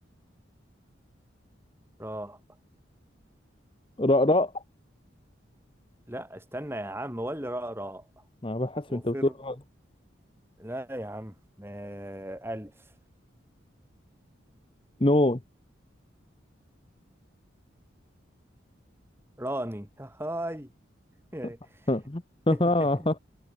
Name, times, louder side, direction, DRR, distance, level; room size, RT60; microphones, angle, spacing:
voice 1, 2.0-2.4 6.1-8.2 8.9-9.6 10.6-12.7 19.4-20.7 21.3-21.8 22.5-23.1, right 1 dB, 10° right, 2.8 m, -36 dB
voice 2, 4.0-4.6 8.4-9.1 9.4-9.5 15.0-15.4 21.9-23.2, left 1 dB, 25° left, 0.9 m, -24 dB
head